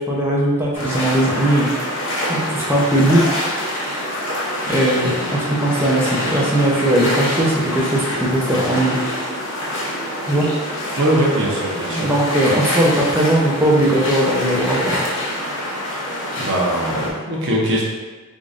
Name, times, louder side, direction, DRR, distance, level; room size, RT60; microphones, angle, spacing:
voice 1, 0.0-1.7 2.3-3.3 4.7-9.0 10.3-10.5 11.9-15.0, right 1 dB, 10° right, -5 dB, 0.6 m, -18 dB
sound 1, 0.7-17.1, left 1 dB, 60° left, 0.8 m, -25 dB
voice 2, 11.0-12.1 16.4-17.8, right 1 dB, 60° right, -5 dB, 0.9 m, -21 dB
5.0 x 2.6 x 2.5 m, 1.3 s
head